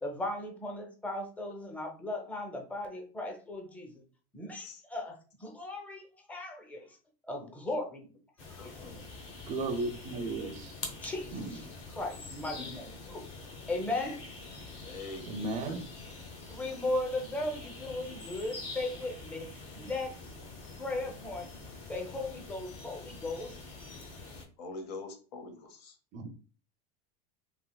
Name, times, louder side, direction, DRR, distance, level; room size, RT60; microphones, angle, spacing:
voice 1, 0.0-4.0 4.3-5.1 5.4-6.9 7.2-8.1 8.5-8.7 11.0-11.6 11.9-13.2 13.7-14.2 16.5-19.5 19.7-20.1 20.8-21.5 21.9-23.6, left 2 dB, 5° left, 2 dB, 0.6 m, -37 dB
sound 1, 8.4-24.5, left 3 dB, 35° left, 0.9 m, -46 dB
voice 2, 8.5-9.1 12.6-12.7 13.8-14.2 14.8-15.8 16.6-16.8 22.1-22.4 23.1-23.2 24.6-26.0, left 3 dB, 85° left, 6 dB, 0.9 m, -45 dB
voice 3, 9.5-10.8 11.3-11.7 15.3-15.9 26.1-26.3, right 2 dB, 35° right, 8 dB, 0.4 m, -35 dB
3.3 x 2.8 x 2.3 m, 0.38 s
supercardioid pair, 130°, 20 cm